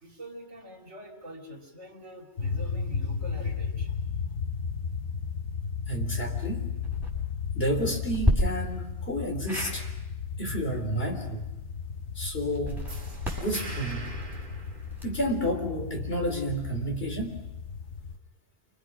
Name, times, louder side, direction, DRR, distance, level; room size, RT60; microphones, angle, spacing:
voice 1, 0.0-4.0, equal, 90° right, -2 dB, 3.6 m, -45 dB
sound 1, 2.4-18.2, left 6 dB, 80° left, 1.4 m, -34 dB
voice 2, 5.9-6.6 7.5-9.9 10.4-11.5 12.2-12.9 13.4-14.1 15.0-17.4, equal, 55° left, 3 dB, 4.0 m, -30 dB
sound 2, 6.7-7.1 8.1-8.3 9.5-9.8 12.5-15.3, equal, ahead, 7.5 m, -32 dB
sound 3, 12.9-15.6, right 2 dB, 45° right, 2.2 m, -42 dB
28.5 x 26.0 x 6.2 m, 0.96 s
omnidirectional pair, 1.2 m